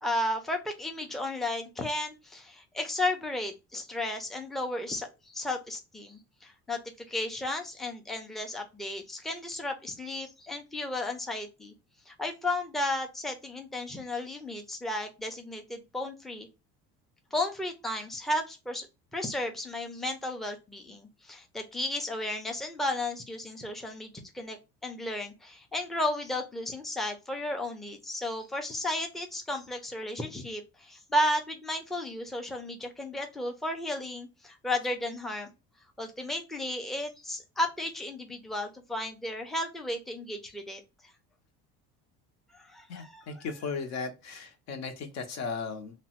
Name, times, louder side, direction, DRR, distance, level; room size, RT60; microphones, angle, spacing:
voice 1, 0.0-5.1 5.3-11.7 12.1-16.5 17.3-18.9 19.1-24.6 24.8-35.5 36.0-41.1 42.5-43.6, left 1 dB, ahead, 3 dB, 0.4 m, -34 dB
voice 2, 42.9-45.9, left 5 dB, 60° left, 5 dB, 0.7 m, -36 dB
2.9 x 2.1 x 2.8 m, 0.26 s
cardioid pair, 135°, 29 cm